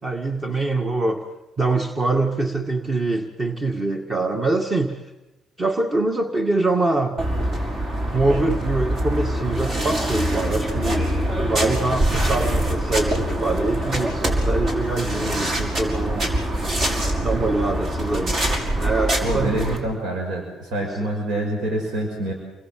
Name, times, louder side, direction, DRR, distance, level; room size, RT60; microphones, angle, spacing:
voice 1, 0.0-1.2 1.6-5.1 5.6-7.2 8.1-11.2 11.4-16.3 17.2-18.4 18.8-19.6 20.9-21.0, right 2 dB, 35° right, 3 dB, 2.2 m, -24 dB
sound 1, 7.2-19.8, right 1 dB, 55° right, 6.0 m, -24 dB
voice 2, 19.2-20.4 20.7-22.3, right 1 dB, 90° right, 1 dB, 6.1 m, -25 dB
29.0 x 22.0 x 7.8 m, 1.0 s
cardioid pair, 90°, 0 cm